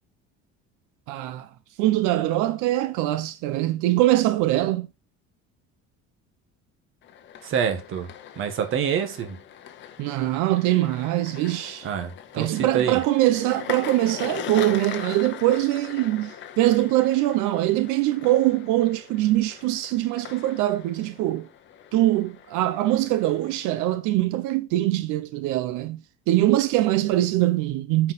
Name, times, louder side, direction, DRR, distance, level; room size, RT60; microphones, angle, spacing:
voice 1, 1.1-1.5 1.8-4.9 10.0-11.9 12.4-21.5 21.9-26.0 26.3-28.1, right 15 dB, 90° right, 0.7 m, -23 dB
sound 1, 7.0-24.0, left 9 dB, 40° left, 0.8 m, -41 dB
voice 2, 7.4-8.1 8.4-9.4 11.8-13.0, right 8 dB, 45° right, 1.4 m, -26 dB
8.6 x 4.7 x 4.1 m
cardioid pair, 175°, 30 cm